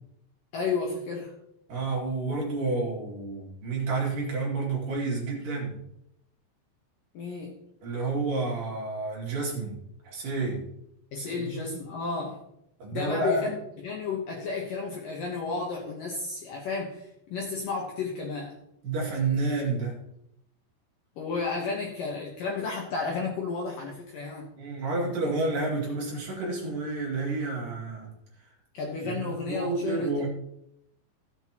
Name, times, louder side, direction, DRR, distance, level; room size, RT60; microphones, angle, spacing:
voice 1, 0.5-1.3 7.1-7.6 11.1-12.4 12.9-18.6 21.2-24.5 28.7-30.3, left 4 dB, 65° left, -1 dB, 2.3 m, -32 dB
voice 2, 1.7-5.8 7.8-9.8 10.0-10.7 11.2-11.6 12.8-13.5 18.8-20.0 24.6-28.1 29.0-30.3, right 3 dB, 55° right, -3 dB, 3.7 m, -30 dB
16.0 x 8.1 x 2.9 m, 0.78 s
omnidirectional pair, 5.2 m